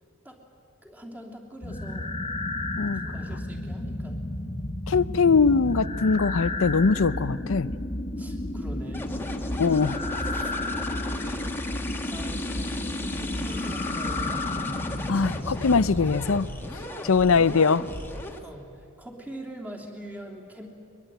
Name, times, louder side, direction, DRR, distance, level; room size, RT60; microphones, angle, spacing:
voice 1, 0.8-2.1 3.0-4.2 8.2-9.1 11.0-14.4 16.9-17.1 18.4-20.7, right 1 dB, 10° right, -1 dB, 3.0 m, -43 dB
sound 1, 1.6-16.5, left 1 dB, 25° left, 1.6 m, -32 dB
voice 2, 4.9-7.7 9.6-10.0 15.1-16.5 16.7-16.8 17.1-17.9, left 5 dB, 70° left, 17 dB, 0.6 m, -22 dB
sound 2, 8.9-18.4, left 2 dB, 10° left, 1.6 m, -37 dB
22.5 x 22.0 x 9.1 m, 2.6 s
head